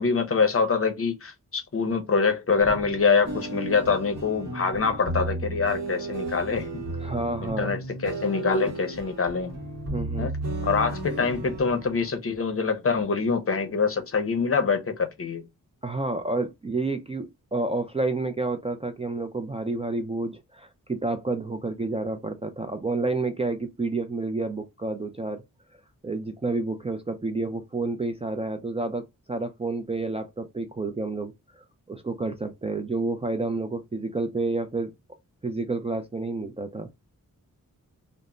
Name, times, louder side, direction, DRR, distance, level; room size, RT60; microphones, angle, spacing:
voice 1, 0.0-6.8 7.4-9.5 10.2-10.3 10.6-15.4, left 5 dB, 40° left, 0.6 m, -25 dB
sound 1, 2.6-12.1, right 2 dB, 50° right, 1.0 m, -34 dB
voice 2, 7.0-7.7 9.9-10.3 15.8-25.4 26.0-31.3 31.9-34.9 35.4-36.9, right 3 dB, 20° right, 0.3 m, -29 dB
2.1 x 2.0 x 3.5 m
cardioid pair, 65°, 34 cm